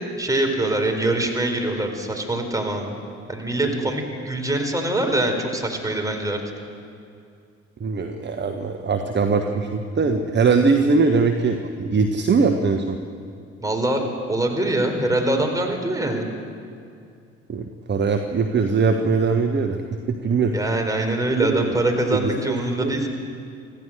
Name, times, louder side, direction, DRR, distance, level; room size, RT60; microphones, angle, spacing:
voice 1, 0.2-2.9 3.3-6.4 13.6-14.0 14.3-16.3 20.5-23.1, right 1 dB, 10° right, 3 dB, 4.4 m, -23 dB
voice 2, 7.8-13.0 17.5-19.8 20.1-20.5 21.4-21.8 22.1-23.1, right 4 dB, 30° right, 5 dB, 1.4 m, -21 dB
26.0 x 15.5 x 6.6 m, 2.3 s
figure-of-eight pair, 50°, 34 cm